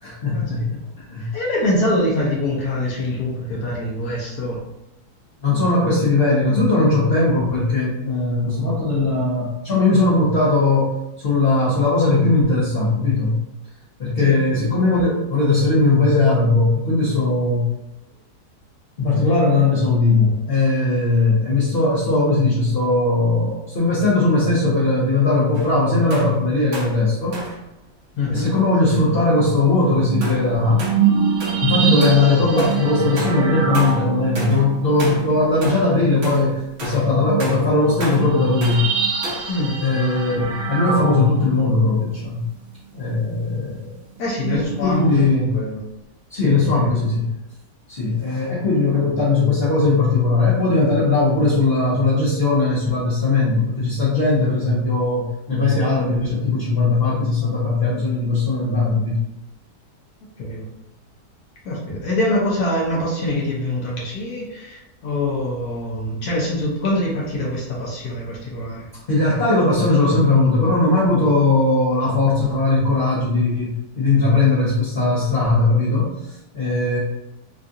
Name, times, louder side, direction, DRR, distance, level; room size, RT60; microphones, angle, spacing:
voice 1, 0.0-1.3 5.4-13.4 14.0-17.7 19.0-27.4 28.3-30.8 31.6-38.9 39.8-42.5 42.9-43.9 44.5-45.5 46.3-47.3 47.9-59.2 69.1-77.0, left 3 dB, 45° left, -8 dB, 0.8 m, -19 dB
voice 2, 1.3-4.6 14.2-14.4 28.2-28.5 39.5-39.8 44.2-45.8 46.4-46.8 60.4-60.7 61.6-68.9, left 1 dB, 70° left, -4 dB, 1.2 m, -24 dB
sound 1, 25.5-25.8 26.1-26.4 26.7-27.0 27.3-27.6 28.5-28.6 30.2-30.5 30.8-31.0 31.4-31.7 32.0-32.3 32.6-32.9 33.2-33.5 33.7-34.0 34.4-34.7 35.0-35.3 35.6-35.9 36.2-36.5 36.8-37.1 37.4-37.7 38.0-38.3 38.6-38.9 39.2-39.5, equal, 50° right, 0.9 m, -32 dB
sound 2, 29.2-36.2 36.7-36.8 37.1-42.0 44.2-45.2, right 7 dB, 80° right, 1.3 m, -25 dB
3.7 x 2.3 x 2.6 m, 0.89 s
omnidirectional pair, 1.8 m